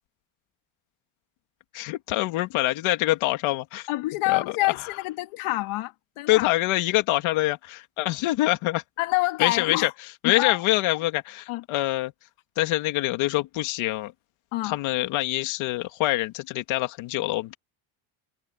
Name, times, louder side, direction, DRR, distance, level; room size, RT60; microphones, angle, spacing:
voice 1, 1.7-3.9 4.3-4.4 6.3-8.8 9.4-9.9 10.2-12.1 12.6-14.1 14.6-17.6, left 17 dB, 70° left, 2.4 m, -25 dB
voice 2, 3.9-6.5 9.0-9.9 10.2-10.6 11.5-11.6 14.5-14.8, left 19 dB, 85° left, 2.4 m, -27 dB
cardioid pair, 160°, 50 cm